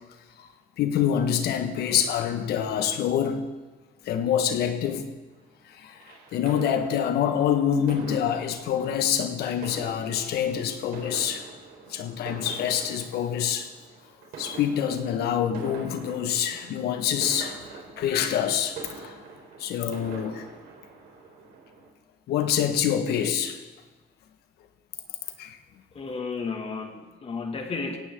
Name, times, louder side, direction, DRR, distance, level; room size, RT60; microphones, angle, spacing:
voice 1, 0.8-3.5 4.0-5.1 5.7-11.5 11.9-13.7 14.4-19.2 19.6-20.5 22.3-23.6 25.4-25.6, left 9 dB, 75° left, 7 dB, 1.6 m, -26 dB
sound 1, 5.8-21.9, right 4 dB, 75° right, 3.8 m, -44 dB
voice 2, 25.9-28.0, left 4 dB, 35° left, 3 dB, 2.3 m, -33 dB
18.0 x 16.5 x 3.9 m, 1.2 s
cardioid pair, 110°, 17 cm